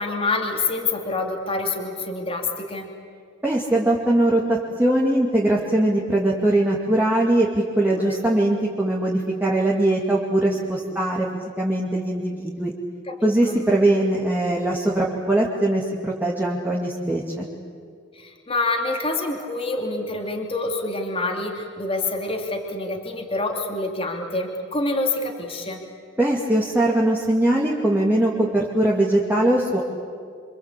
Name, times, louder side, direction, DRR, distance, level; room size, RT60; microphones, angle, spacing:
voice 1, 0.0-2.9 7.9-8.2 10.9-11.0 13.1-13.2 13.5-13.6 18.1-25.8, left 2 dB, 30° left, 2 dB, 2.8 m, -27 dB
voice 2, 3.4-12.7 13.2-17.4 26.2-29.8, right 1 dB, 10° right, -4 dB, 2.4 m, -21 dB
27.0 x 26.0 x 8.4 m, 2.2 s
head